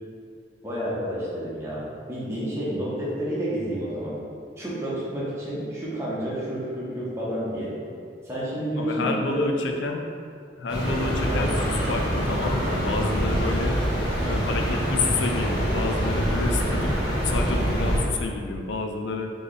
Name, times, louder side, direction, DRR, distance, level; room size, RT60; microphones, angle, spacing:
voice 1, 0.6-4.2 4.6-7.7 8.2-9.4 11.2-11.5, equal, 15° right, -9 dB, 0.9 m, -30 dB
voice 2, 8.8-10.0 10.6-13.8 14.2-19.3, left 3 dB, 75° left, 3 dB, 0.5 m, -29 dB
sound 1, 10.7-18.0, equal, 25° left, 1.1 m, -25 dB
4.3 x 3.3 x 3.2 m, 2.4 s
head